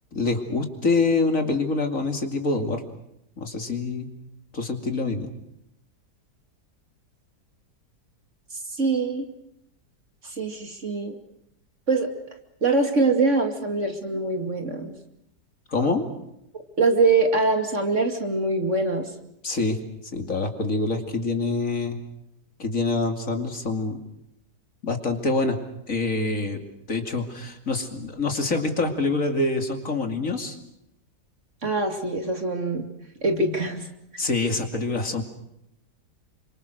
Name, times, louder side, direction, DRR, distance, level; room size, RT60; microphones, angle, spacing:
voice 1, 0.1-2.8 3.4-4.1 4.5-5.3 15.7-16.0 19.4-19.8 20.1-22.0 22.6-24.0 24.8-25.6 25.9-30.6 34.2-35.2, left 3 dB, 50° left, 5 dB, 3.0 m, -25 dB
voice 2, 8.8-9.3 10.2-11.2 11.9-12.1 12.6-14.9 16.8-19.1 31.6-32.9 33.2-33.9, right 3 dB, 45° right, 5 dB, 2.8 m, -23 dB
28.5 x 25.5 x 6.6 m, 0.81 s
omnidirectional pair, 1.8 m